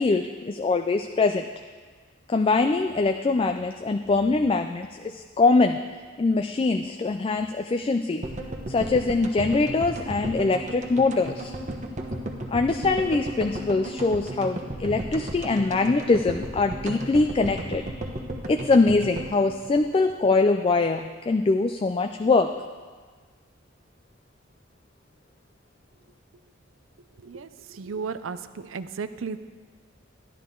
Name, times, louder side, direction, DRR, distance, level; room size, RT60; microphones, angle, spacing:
voice 1, 0.0-1.5 2.3-5.8 6.2-8.2 8.7-11.5 12.5-17.9 18.5-22.5, left 3 dB, 30° left, 6 dB, 0.3 m, -23 dB
sound 1, 8.2-20.5 20.7-20.8 21.0-21.1, right 1 dB, 40° right, 1.0 m, -34 dB
voice 2, 27.2-29.4, right 5 dB, 90° right, 12 dB, 0.5 m, -34 dB
12.5 x 11.5 x 3.8 m, 1.5 s
head